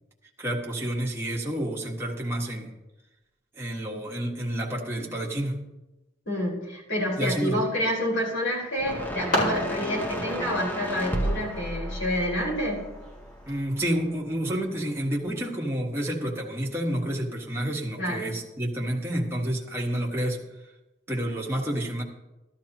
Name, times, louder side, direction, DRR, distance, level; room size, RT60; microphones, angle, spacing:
voice 1, 0.4-2.7 3.5-5.6 7.2-7.6 13.4-20.4 21.1-22.0, right 1 dB, 15° right, -2 dB, 1.5 m, -29 dB
voice 2, 6.3-12.8 18.0-18.2, equal, 80° left, -4 dB, 4.9 m, -28 dB
sound 1, 8.4-13.5, equal, 45° left, 5.0 m, -35 dB
sound 2, 8.8-14.1, right 1 dB, 10° left, 0.8 m, -33 dB
13.5 x 12.5 x 3.0 m, 1.0 s
head